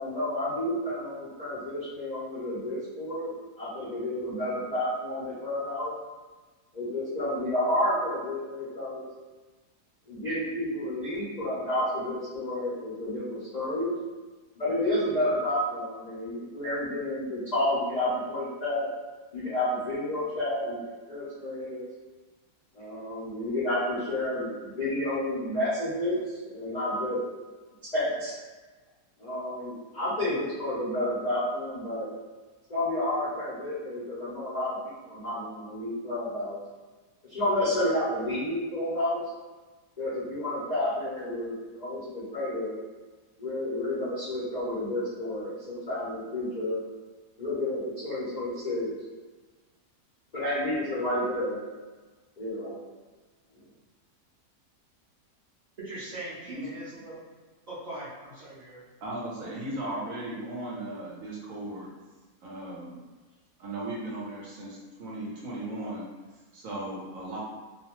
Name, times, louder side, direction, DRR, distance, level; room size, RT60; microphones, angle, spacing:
voice 1, 0.0-5.9 6.7-9.0 10.1-14.0 14.6-18.9 19.3-21.8 22.7-27.2 27.9-28.4 29.2-32.1 32.7-36.6 37.3-39.2 40.0-42.7 43.4-46.8 47.4-48.9 50.3-51.6 52.4-52.8, left 1 dB, 85° left, -10 dB, 0.3 m, -30 dB
voice 2, 55.8-57.2 57.7-58.8, right 1 dB, 80° right, -11 dB, 0.3 m, -40 dB
voice 3, 59.0-61.9 62.4-63.0 63.6-66.1 66.5-67.4, right 1 dB, 65° right, -5 dB, 1.0 m, -36 dB
2.7 x 2.0 x 2.9 m, 1.3 s
omnidirectional pair, 1.7 m